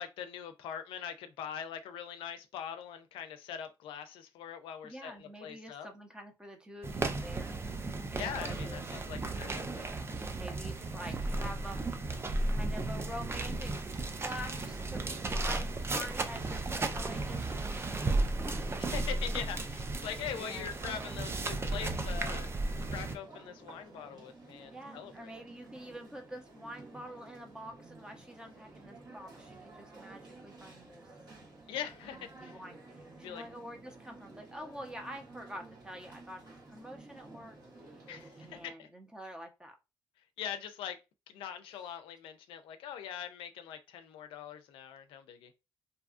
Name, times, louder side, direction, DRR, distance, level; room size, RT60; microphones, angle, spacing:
voice 1, 0.0-5.9 8.1-9.9 18.9-22.5 22.8-25.3 31.7-32.6 33.2-33.4 38.1-38.9 40.4-41.0 41.3-45.5, left 8 dB, 90° left, 0.4 m, -42 dB
voice 2, 4.8-7.6 8.1-9.1 10.3-12.1 12.5-18.6 20.3-20.8 24.7-31.0 32.4-37.6 37.8-38.0 38.4-39.8, equal, 10° right, 0.8 m, -47 dB
sound 1, 6.8-23.2, right 2 dB, 30° right, 0.4 m, -34 dB
sound 2, 19.3-38.7, right 2 dB, 50° right, 1.2 m, -53 dB
2.7 x 2.3 x 2.4 m
cardioid pair, 70°, 9 cm